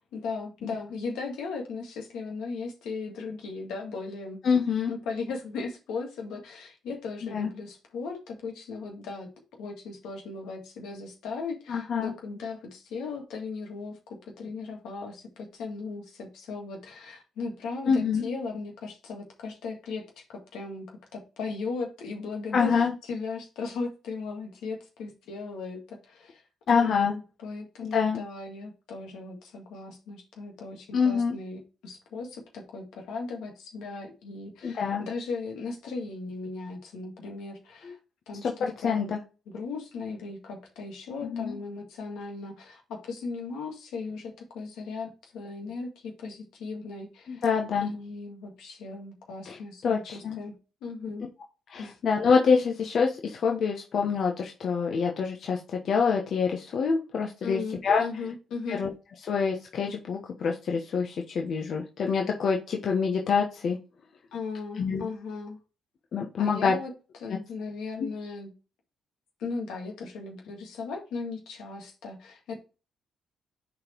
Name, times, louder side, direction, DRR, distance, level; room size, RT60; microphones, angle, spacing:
voice 1, 0.1-4.4 4.9-9.3 9.6-26.4 26.7-38.0 38.3-39.1 39.5-47.4 47.8-51.3 51.8-52.0 57.4-58.8 64.3-65.6 66.4-66.9 67.2-68.5 69.4-72.6, left 4 dB, 85° left, 2 dB, 2.1 m, -37 dB
voice 2, 4.4-4.9 7.3-7.5 11.7-12.1 17.9-18.3 22.5-22.9 26.7-27.1 27.9-28.2 30.9-31.3 34.6-35.0 38.4-39.2 41.2-41.6 47.3-47.9 49.5-49.6 49.8-50.4 51.7-55.6 55.8-58.0 58.7-58.9 59.3-63.8 64.8-65.0 66.1-66.7 68.0-68.1, left 5 dB, 60° left, 1 dB, 1.1 m, -26 dB
6.2 x 4.3 x 4.6 m, 0.32 s
cardioid pair, 90°, 0 cm